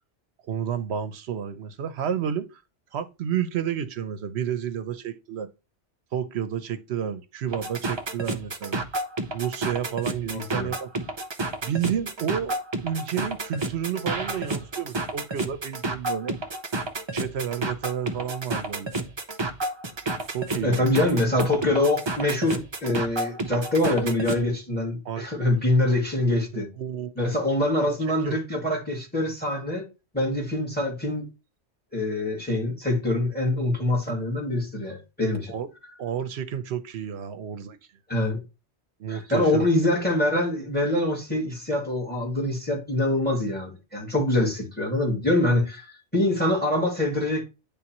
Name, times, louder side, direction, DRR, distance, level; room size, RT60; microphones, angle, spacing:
voice 1, 0.5-2.6 2.9-5.5 6.1-8.9 9.3-10.9 11.6-16.4 17.1-18.9 20.3-21.0 25.0-25.3 26.8-27.3 27.8-28.4 35.5-35.7 36.0-37.8 39.0-39.7, right 9 dB, 70° right, 0.9 m, -31 dB
sound 1, 7.5-24.4, right 2 dB, 30° right, 0.6 m, -30 dB
voice 2, 10.3-10.7 20.6-26.7 27.2-29.9 30.1-31.2 31.9-35.5 38.1-38.4 39.1-47.4, left 1 dB, 10° left, 2.2 m, -24 dB
9.6 x 3.5 x 2.9 m
omnidirectional pair, 1.2 m